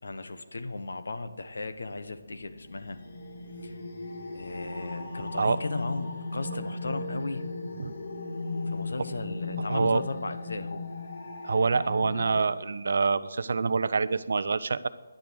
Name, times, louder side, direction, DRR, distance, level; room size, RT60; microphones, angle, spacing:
voice 1, 0.0-3.0 3.6-3.8 4.3-7.4 8.6-10.9, left 3 dB, 75° left, 10 dB, 1.3 m, -36 dB
sound 1, 2.2-12.4, left 3 dB, 50° left, 2.8 m, -37 dB
voice 2, 9.7-10.0 11.4-14.9, right 4 dB, 45° right, 15 dB, 0.6 m, -26 dB
11.0 x 10.5 x 7.9 m, 1.3 s
hypercardioid pair, 180°, 0 cm